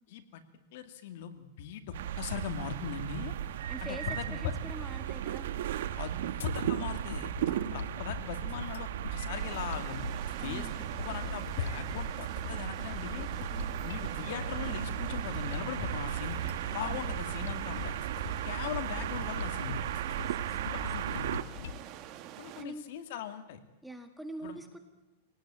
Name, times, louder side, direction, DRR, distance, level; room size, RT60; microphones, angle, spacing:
voice 1, 0.1-0.4 0.7-3.3 3.8-4.5 6.0-7.3 7.7-10.0 10.4-13.3 13.8-18.0 18.4-19.8 20.5-21.3 22.4-23.6 24.4-24.6, left 9 dB, 60° left, 8 dB, 2.3 m, -39 dB
sound 1, 1.9-21.4, right 11 dB, 75° right, 1.2 m, -36 dB
voice 2, 3.7-5.7 7.5-8.0 10.4-10.8 13.5-13.8 16.7-17.1 20.1-21.1 22.6-22.9 23.8-24.8, right 1 dB, ahead, 6 dB, 1.8 m, -45 dB
sound 2, 6.4-21.8, left 9 dB, 90° left, 1.3 m, -43 dB
sound 3, 9.3-22.6, right 12 dB, 35° right, 1.7 m, -47 dB
25.0 x 18.5 x 8.9 m, 1.0 s
supercardioid pair, 155°, 0 cm